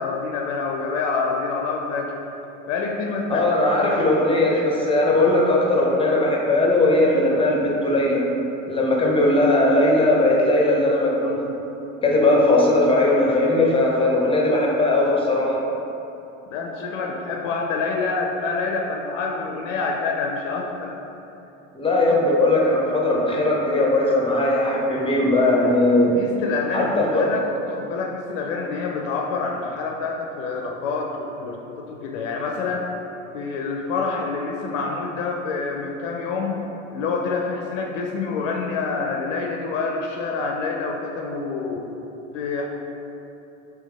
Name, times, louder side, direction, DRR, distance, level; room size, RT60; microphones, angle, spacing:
voice 1, 0.0-2.2 2.7-3.5 3.8-4.1 16.5-20.9 22.1-22.2 26.1-32.9 33.3-36.6 36.9-41.8 42.3-42.7, left 4 dB, 65° left, 1 dB, 0.5 m, -27 dB
voice 2, 3.3-8.2 8.7-11.5 12.0-15.6 21.7-26.2 26.7-27.2, left 2 dB, 15° left, -2 dB, 0.6 m, -19 dB
3.3 x 3.1 x 3.3 m, 2.9 s
hypercardioid pair, 75°, 40 cm